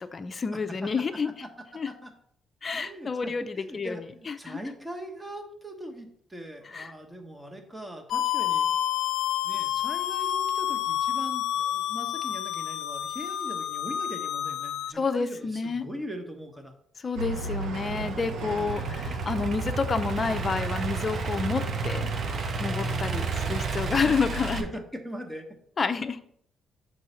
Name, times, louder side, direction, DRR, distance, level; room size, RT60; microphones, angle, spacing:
voice 1, 0.0-1.3 1.8-1.9 2.6-3.4 3.7-3.9 4.4-4.6 6.7-6.9 14.9-15.8 17.0-22.1 22.6-24.6 25.8-26.2, left 4 dB, 35° left, 8 dB, 0.6 m, -29 dB
voice 2, 2.7-8.7 9.4-16.7 18.4-18.9 24.0-24.2 24.5-25.5, equal, 15° right, 4 dB, 1.3 m, -41 dB
sound 1, 8.1-14.9, left 11 dB, 85° left, 0.3 m, -29 dB
sound 2, 17.1-23.8, right 4 dB, 85° right, 0.9 m, -37 dB
Idling / Accelerating revving vroom, 17.5-24.6, right 4 dB, 50° right, 0.8 m, -32 dB
6.7 x 4.7 x 4.4 m, 0.67 s
cardioid pair, 90°, 0 cm